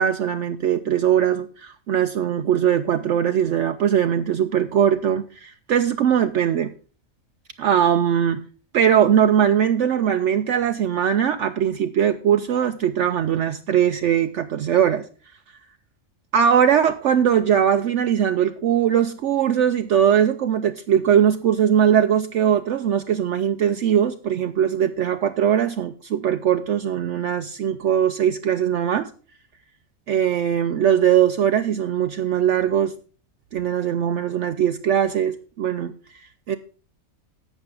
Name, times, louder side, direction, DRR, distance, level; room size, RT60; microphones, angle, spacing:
voice 1, 0.0-6.7 7.6-8.4 8.7-15.0 16.3-29.1 30.1-32.9 33.5-36.6, right 9 dB, 65° right, 9 dB, 0.9 m, -20 dB
11.5 x 8.2 x 3.8 m, 0.39 s
omnidirectional pair, 1.4 m